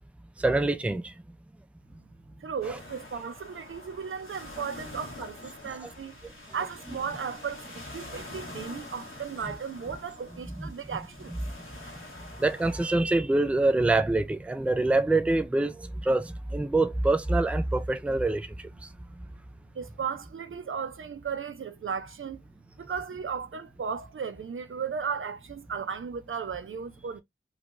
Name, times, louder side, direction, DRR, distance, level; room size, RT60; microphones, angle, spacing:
voice 1, 0.4-1.1 2.7-2.8 5.8-5.9 10.6-10.7 12.4-18.5, right 2 dB, 5° right, 0.3 m, -25 dB
voice 2, 2.4-6.2 6.5-11.3 19.7-22.4 22.8-27.2, right 6 dB, 80° right, 0.5 m, -35 dB
sound 1, 2.6-12.9, left 2 dB, 85° left, 1.1 m, -45 dB
3.3 x 2.2 x 2.4 m
wide cardioid pair, 55°, 21 cm